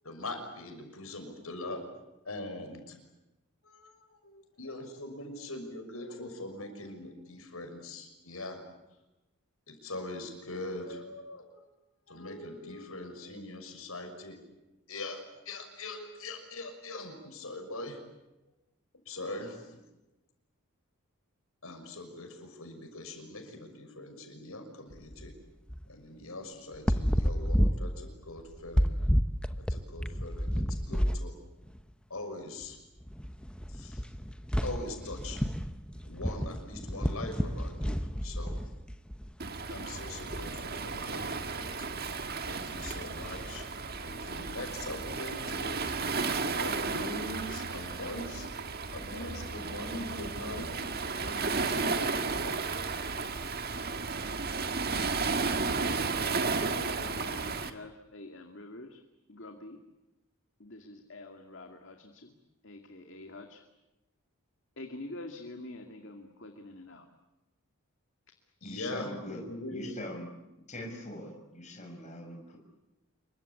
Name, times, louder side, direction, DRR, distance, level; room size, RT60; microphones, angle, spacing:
voice 1, 0.0-1.8 2.2-3.0 3.6-8.6 9.7-11.6 12.1-14.4 14.9-18.0 19.0-19.8 21.6-25.3 25.9-29.0 29.6-31.3 32.1-32.8 33.7-34.0 34.6-35.4 36.0-38.6 39.7-41.9 42.4-43.7 44.0-46.0 46.6-48.5 48.9-50.7 51.2-53.0 68.6-70.0, left 2 dB, 70° left, 5 dB, 6.2 m, -42 dB
sound 1, 24.9-25.3 25.7-25.9 26.7-31.3 31.6-31.8 32.6-32.7 33.0-39.3 40.1-40.5 42.6-43.7, equal, 5° left, 1.0 m, -31 dB
Waves surf, 39.4-57.7, right 4 dB, 45° right, 1.8 m, -33 dB
voice 2, 56.6-59.0 59.3-59.8 60.6-62.3 62.6-63.6 64.8-67.0, left 2 dB, 55° left, 4 dB, 2.3 m, -46 dB
voice 3, 68.6-69.4 69.7-70.3 70.7-72.6, left 1 dB, 30° left, 2 dB, 6.3 m, -42 dB
27.5 x 24.0 x 8.5 m, 0.99 s
head